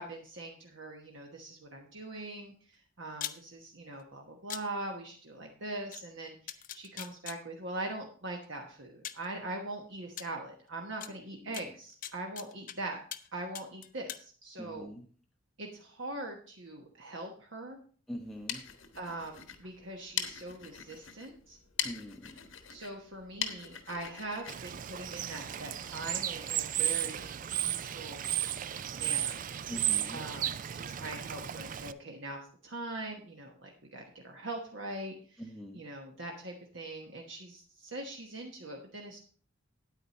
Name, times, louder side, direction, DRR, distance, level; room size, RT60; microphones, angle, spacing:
voice 1, 0.0-2.5 3.0-13.0 13.3-14.9 15.6-17.8 18.9-21.6 22.7-28.3 28.9-29.4 30.1-35.4 35.7-39.2, right 2 dB, 60° right, 1 dB, 1.2 m, -42 dB
sound 1, 3.1-3.4 4.5-4.6 5.9-6.0 6.5-7.4 8.4-8.5 9.0-9.3 10.2-10.3 11.0-11.1 11.5-12.8 13.1-13.3 13.5-14.2, left 11 dB, 40° left, 0.5 m, -40 dB
voice 2, 14.6-15.0 18.1-18.6 21.8-22.4 29.7-30.2 35.4-35.8, equal, ahead, 1 dB, 0.7 m, -43 dB
sound 2, 18.2-25.7, left 9 dB, 70° left, 1.1 m, -41 dB
Bird / Water, 24.5-31.9, right 11 dB, 40° right, 0.3 m, -34 dB
9.2 x 8.9 x 4.1 m, 0.42 s
head